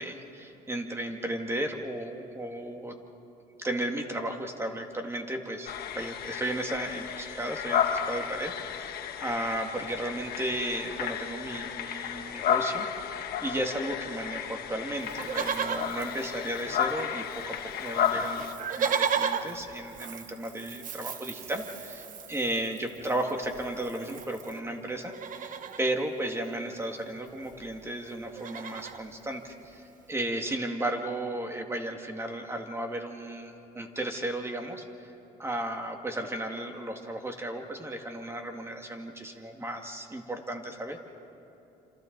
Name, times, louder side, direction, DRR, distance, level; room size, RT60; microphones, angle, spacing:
voice 1, 0.0-3.0 3.6-35.1 35.4-41.0, right 1 dB, 15° right, 4 dB, 2.0 m, -34 dB
sound 1, 5.7-18.5, left 8 dB, 65° left, 1.3 m, -33 dB
Livestock farm animals working animals, 15.1-17.1 17.3-17.4 17.7-24.6 25.0-25.9 27.2-27.3 27.4-27.7 28.1-29.0 29.6-29.7, right 7 dB, 50° right, 1.0 m, -35 dB
27.5 x 27.0 x 4.0 m, 2.8 s
cardioid pair, 110°, 17 cm